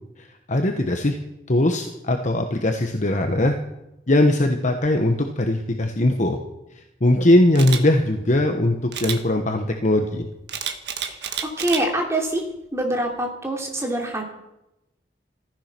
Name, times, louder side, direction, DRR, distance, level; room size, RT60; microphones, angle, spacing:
voice 1, 0.2-1.2 1.5-3.6 4.1-6.4 6.7-10.3, left 1 dB, 45° left, 5 dB, 1.2 m, -20 dB
Camera, 7.5-7.8 8.9-9.2 10.5-11.8 12.3-12.6, right 8 dB, 65° right, 1.6 m, -29 dB
voice 2, 11.2-12.4 12.7-14.2, right 1 dB, 15° right, 1 dB, 3.0 m, -25 dB
15.5 x 15.0 x 6.1 m, 0.91 s
head